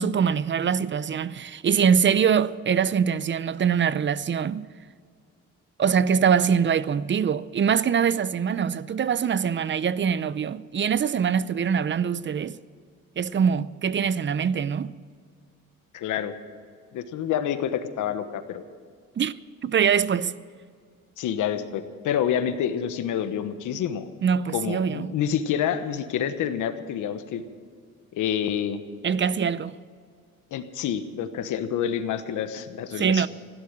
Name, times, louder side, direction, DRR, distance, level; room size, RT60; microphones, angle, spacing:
voice 1, 0.0-4.7 5.8-12.6 13.2-14.9 19.2-19.3 19.6-20.3 24.2-25.1 29.0-29.8 33.0-33.3, right 7 dB, 40° right, 0.6 m, -23 dB
voice 2, 15.9-16.3 16.9-18.6 21.2-24.1 24.5-27.4 28.1-28.8 30.5-33.3, left 9 dB, 85° left, 1.2 m, -28 dB
15.5 x 12.0 x 7.6 m
cardioid pair, 90°, 30 cm